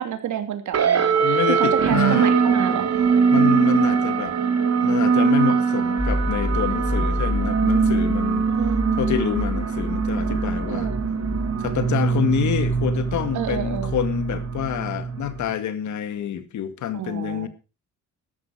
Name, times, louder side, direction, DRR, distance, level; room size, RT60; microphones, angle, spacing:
voice 1, 0.0-2.8 8.5-9.1 10.7-11.0 13.3-13.9 16.9-17.5, right 10 dB, 75° right, 2.9 m, -29 dB
sound 1, 0.7-15.5, right 6 dB, 55° right, 3.0 m, -22 dB
voice 2, 1.2-2.6 3.3-4.4 4.8-8.5 9.0-10.9 11.6-17.5, left 9 dB, 70° left, 2.2 m, -27 dB
sound 2, 6.0-15.0 15.2-15.5, equal, 5° left, 3.5 m, -30 dB
14.0 x 11.5 x 4.9 m
cardioid pair, 90°, 30 cm